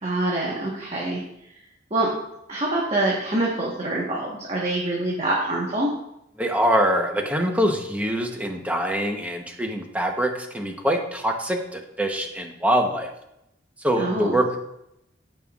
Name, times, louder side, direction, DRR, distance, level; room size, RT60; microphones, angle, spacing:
voice 1, 0.0-1.2 1.9-2.1 2.5-5.9 14.0-14.4, right 2 dB, 35° right, -4 dB, 1.2 m, -25 dB
voice 2, 6.4-13.1 13.8-14.6, equal, 10° right, 3 dB, 0.9 m, -24 dB
15.0 x 5.5 x 2.4 m, 0.83 s
head